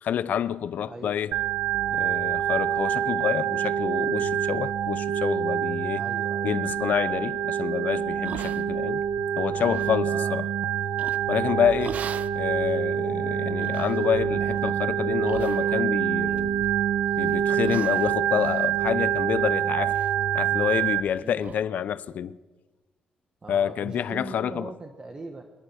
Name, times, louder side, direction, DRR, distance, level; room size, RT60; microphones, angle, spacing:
voice 1, 0.0-1.3 1.9-6.0 6.4-9.0 9.4-10.5 11.3-12.0 12.3-16.6 17.2-20.0 20.3-22.4 23.5-24.7, left 9 dB, 65° left, 0.8 m, -28 dB
voice 2, 0.9-1.3 5.9-6.6 10.1-10.6 11.7-12.0 21.2-21.4 23.4-25.4, right 3 dB, 30° right, 1.9 m, -41 dB
Organ, 1.3-21.0, right 9 dB, 85° right, 1.2 m, -26 dB
sound 1, 8.2-9.0 9.4-9.9 11.0-11.4 11.8-12.4 12.9-13.0 13.6-14.0 14.4-14.7 15.3-16.0 16.3-16.8 17.2-17.4 17.6-19.5 19.8-20.1 20.4-20.5 20.9-21.0 21.4-21.6, right 7 dB, 60° right, 0.7 m, -40 dB
24.0 x 19.0 x 6.5 m
cardioid pair, 115°, 3 cm